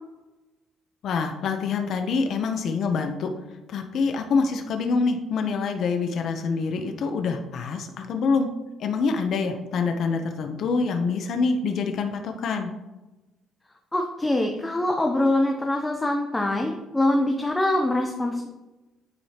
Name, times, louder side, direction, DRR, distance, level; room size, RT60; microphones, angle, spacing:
voice 1, 1.0-8.5 8.8-12.7, left 4 dB, 55° left, 5 dB, 0.7 m, -26 dB
voice 2, 13.9-18.5, left 1 dB, 10° left, 3 dB, 0.6 m, -24 dB
9.4 x 4.8 x 2.9 m, 1.1 s
cardioid pair, 135°, 0 cm